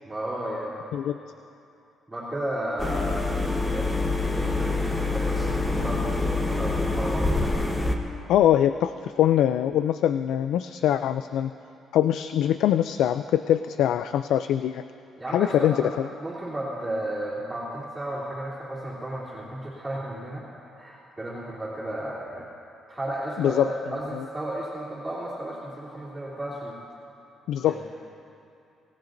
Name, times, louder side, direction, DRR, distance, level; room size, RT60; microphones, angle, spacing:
voice 1, 0.1-0.8 2.1-3.2 3.6-4.0 4.3-7.5 15.2-20.4 20.7-22.5 22.9-26.8 27.6-27.8, right 1 dB, 15° right, -9 dB, 2.9 m, -33 dB
sound 1, 2.8-8.0, left 2 dB, 15° left, 1.1 m, -26 dB
voice 2, 8.3-11.5 11.9-14.8 15.3-15.9 23.4-23.7 24.1-24.2 27.5-27.8, left 11 dB, 80° left, 11 dB, 0.3 m, -23 dB
26.0 x 17.5 x 2.6 m, 2.7 s
cardioid pair, 140°, 0 cm